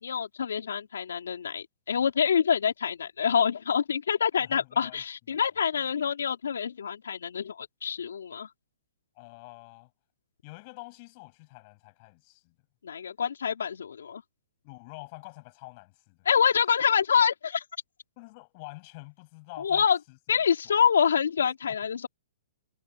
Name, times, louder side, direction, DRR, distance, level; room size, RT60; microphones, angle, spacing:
voice 1, 0.0-8.5 12.8-14.2 16.3-17.6 19.6-20.0 20.3-22.1, left 7 dB, 85° left, 4.2 m, -26 dB
voice 2, 4.4-5.0 9.2-9.9 10.4-12.5 14.6-16.2 18.2-20.2 20.6-20.7 21.7-21.8, left 28 dB, 35° left, 7.9 m, -47 dB
hypercardioid pair, 150°, 0 cm